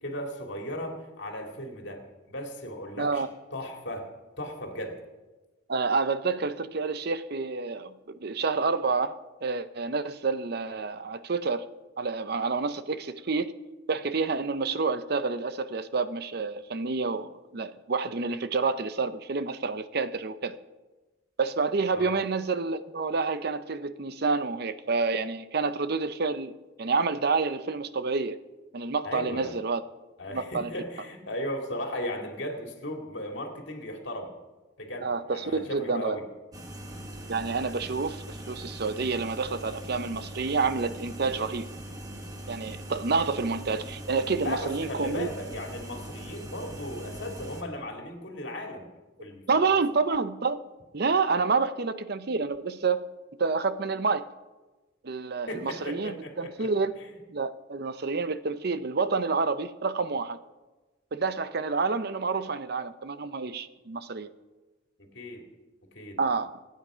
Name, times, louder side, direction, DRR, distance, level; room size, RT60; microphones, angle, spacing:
voice 1, 0.0-3.3 3.5-4.1 4.4-4.9 21.9-22.2 29.0-29.5 30.2-34.3 34.8-36.2 44.4-48.9 49.2-49.5 49.7-49.8 55.5-57.1 65.0-65.4 65.9-66.2, left 1 dB, 60° left, 2.6 m, -36 dB
voice 2, 3.0-3.3 5.7-7.9 8.2-11.7 12.0-13.5 13.9-20.6 21.4-26.5 26.8-28.4 28.7-29.8 30.3-30.7 35.0-36.2 37.3-41.7 42.5-45.3 49.5-50.6 50.9-53.1 53.4-54.2 55.0-56.9 57.3-60.4 61.1-64.3 66.2-66.6, right 4 dB, 50° right, 0.6 m, -28 dB
sound 1, 36.5-47.6, right 1 dB, 20° right, 1.5 m, -41 dB
25.0 x 9.5 x 5.0 m
head